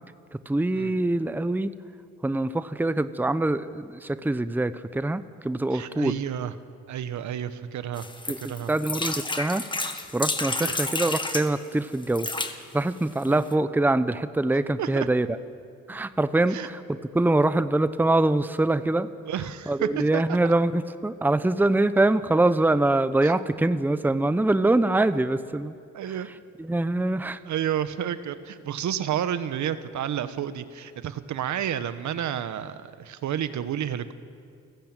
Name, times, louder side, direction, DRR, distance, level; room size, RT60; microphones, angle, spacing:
voice 1, 0.5-1.7 2.2-6.2 8.3-9.7 10.1-15.4 15.9-19.1 19.7-25.7 26.1-26.2 26.6-27.4, right 2 dB, 5° right, 13 dB, 0.8 m, -24 dB
voice 2, 5.7-6.5 6.9-8.1 8.4-8.7 10.6-10.7 13.3-13.4 14.8-15.1 16.5-16.7 19.2-20.5 23.2-23.3 25.9-26.3 27.4-34.1, right 10 dB, 70° right, 12 dB, 1.3 m, -30 dB
sound 1, 8.0-11.5 12.0-12.5 13.2-13.3 13.5-13.6, left 2 dB, 15° left, 1.7 m, -30 dB
29.5 x 15.0 x 9.1 m, 2.3 s
cardioid pair, 90°, 30 cm